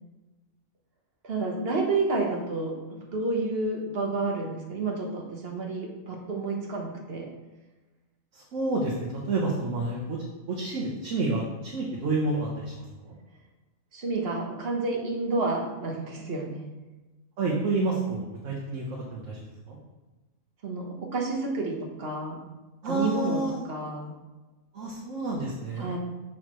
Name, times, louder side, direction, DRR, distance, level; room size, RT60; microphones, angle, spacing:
voice 1, 1.2-7.3 13.9-16.7 20.6-22.4 22.8-23.4 23.6-24.1 25.8-26.0, right 3 dB, 50° right, 0 dB, 1.3 m, -30 dB
voice 2, 8.3-10.2 10.5-13.2 17.4-19.8 22.8-23.6 24.7-25.9, right 2 dB, 65° right, -3 dB, 1.3 m, -29 dB
6.5 x 6.2 x 3.1 m, 1.2 s
omnidirectional pair, 1.4 m